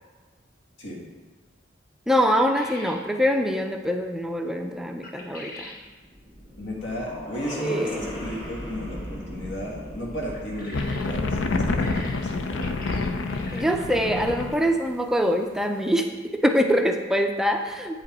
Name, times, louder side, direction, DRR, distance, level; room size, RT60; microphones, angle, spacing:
voice 1, 2.1-5.7 7.6-8.0 13.5-16.0 16.3-18.0, equal, 5° right, 4 dB, 0.4 m, -24 dB
sound 1, 2.3-3.0 5.0-5.8 10.2-11.1 11.5-13.8, left 1 dB, 50° left, 1.1 m, -42 dB
sound 2, 5.8-12.2, equal, 30° left, 1.9 m, -38 dB
voice 2, 6.6-12.8, equal, 70° left, -2 dB, 1.7 m, -34 dB
sound 3, 10.7-14.7, left 3 dB, 85° left, 0.6 m, -27 dB
8.6 x 5.2 x 4.2 m, 1.3 s
head